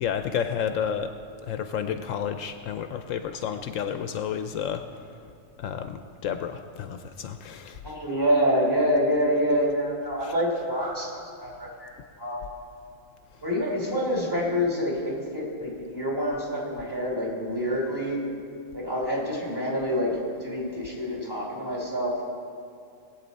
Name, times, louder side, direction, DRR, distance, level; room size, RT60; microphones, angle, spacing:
voice 1, 0.0-1.1 1.5-4.8 5.6-7.8 10.2-10.4, left 8 dB, 75° left, 8 dB, 0.9 m, -31 dB
voice 2, 7.8-11.9 12.2-12.4 13.4-18.2 18.7-20.1 20.4-22.2, equal, 15° right, -4 dB, 3.1 m, -27 dB
20.0 x 8.4 x 4.1 m, 2.4 s
omnidirectional pair, 1.4 m